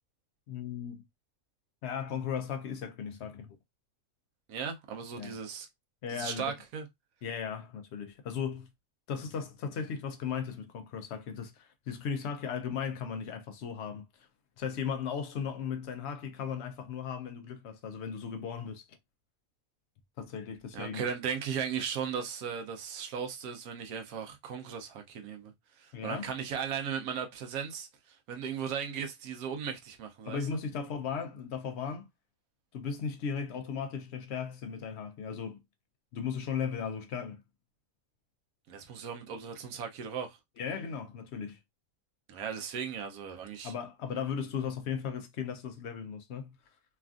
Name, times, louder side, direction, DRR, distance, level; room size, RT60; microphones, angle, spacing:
voice 1, 0.5-1.0 1.8-3.6 5.2-5.4 6.0-6.4 7.2-8.7 9.1-14.0 14.6-18.8 20.2-21.0 25.9-26.3 30.2-32.1 32.7-35.6 36.1-37.4 40.6-41.6 43.6-46.6, left 7 dB, 65° left, 0.7 m, -36 dB
voice 2, 4.5-5.7 6.1-6.8 20.7-25.5 25.8-30.6 38.7-40.4 42.3-43.7, right 7 dB, 80° right, 1.1 m, -37 dB
3.3 x 2.4 x 2.3 m
omnidirectional pair, 1.5 m